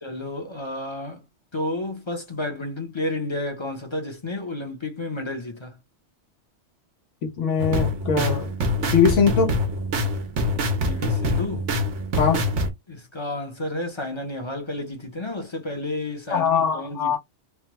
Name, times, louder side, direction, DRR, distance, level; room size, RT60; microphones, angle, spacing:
voice 1, 0.0-1.2 1.5-5.8 10.8-11.7 12.9-17.2, left 2 dB, 30° left, 0.6 m, -31 dB
voice 2, 7.2-8.5 8.9-9.6 12.2-12.4 16.3-17.2, left 6 dB, 85° left, 1.3 m, -21 dB
sound 1, 7.6-12.7, left 1 dB, 85° right, 1.2 m, -25 dB
3.3 x 2.2 x 2.9 m
omnidirectional pair, 1.2 m